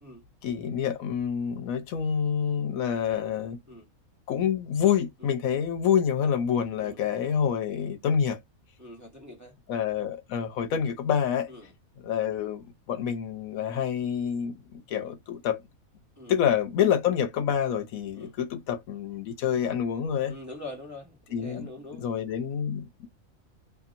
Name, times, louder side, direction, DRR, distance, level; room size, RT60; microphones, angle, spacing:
voice 1, 0.4-3.6 4.3-8.4 9.7-11.5 12.0-15.6 16.3-20.3 21.3-21.7 22.0-23.1, left 8 dB, 75° left, 1.1 m, -27 dB
voice 2, 8.8-9.5 11.5-11.7 16.2-16.4 18.1-18.4 20.3-22.0, left 1 dB, 15° right, 0.9 m, -44 dB
2.8 x 2.7 x 2.5 m
omnidirectional pair, 1.5 m